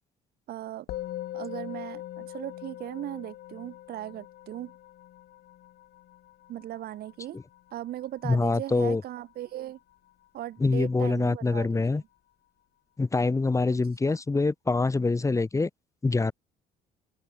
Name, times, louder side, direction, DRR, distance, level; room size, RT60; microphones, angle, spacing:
voice 1, 0.5-0.9 1.3-4.7 6.5-7.4 7.7-9.8 10.3-12.0 13.7-14.2, right 13 dB, 65° right, 2.0 m, -38 dB
Musical instrument, 0.9-10.4, left 14 dB, 70° left, 4.7 m, -43 dB
voice 2, 8.2-9.0 10.6-12.0 13.0-15.7 16.0-16.3, left 3 dB, 20° left, 2.4 m, -25 dB
open air
cardioid pair, 110°, 17 cm